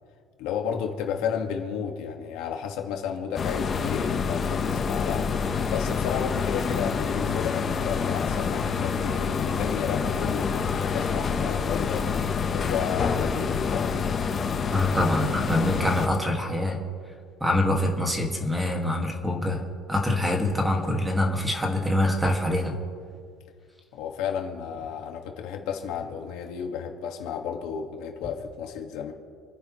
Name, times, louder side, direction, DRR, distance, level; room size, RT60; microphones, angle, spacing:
voice 1, 0.4-5.3 5.7-12.1 12.5-14.0 23.9-29.1, left 7 dB, 70° left, 3 dB, 1.8 m, -32 dB
sound 1, 3.4-16.1, left 6 dB, 30° left, 1.1 m, -27 dB
voice 2, 14.7-16.8 17.4-19.6 19.9-22.7, left 1 dB, 10° right, 1 dB, 1.9 m, -25 dB
30.0 x 10.5 x 3.1 m, 2.2 s
cardioid pair, 145°, 0 cm